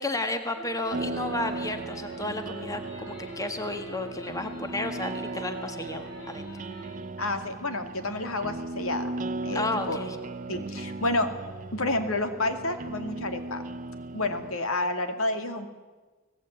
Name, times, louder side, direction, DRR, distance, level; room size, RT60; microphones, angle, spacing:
voice 1, 0.0-6.5 9.5-10.2, left 2 dB, 15° left, 7 dB, 1.7 m, -32 dB
sound 1, 0.6-7.0, left 1 dB, 60° left, 5.9 m, -44 dB
sound 2, 0.9-14.6, right 2 dB, 35° right, 0.6 m, -37 dB
voice 2, 7.2-9.1 9.4-10.0 10.5-11.3 11.7-13.6 14.1-15.7, left 2 dB, 80° left, 7 dB, 2.5 m, -29 dB
24.5 x 18.5 x 9.0 m, 1.3 s
head